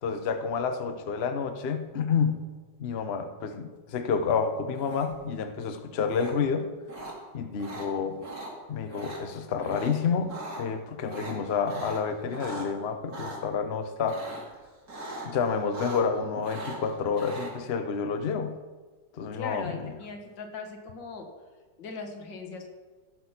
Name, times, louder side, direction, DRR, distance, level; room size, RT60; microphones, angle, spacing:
voice 1, 0.0-2.5 2.8-6.7 7.3-8.2 8.7-14.2 15.2-18.6 19.2-19.9, left 6 dB, 50° left, 8 dB, 0.8 m, -29 dB
sound 1, 4.8-5.3 6.1-6.3 6.9-7.1 7.6-7.9 8.2-8.5 8.9-9.2 9.6-9.9 10.2-10.6 11.1-12.7 13.1-13.4 14.0-14.5 14.9-15.3 15.6-16.2 16.4-17.5, right 2 dB, 55° right, 2.8 m, -39 dB
voice 2, 19.3-21.3 21.8-22.7, left 4 dB, 80° left, 4 dB, 2.1 m, -39 dB
15.5 x 6.2 x 5.7 m, 1.4 s
omnidirectional pair, 1.9 m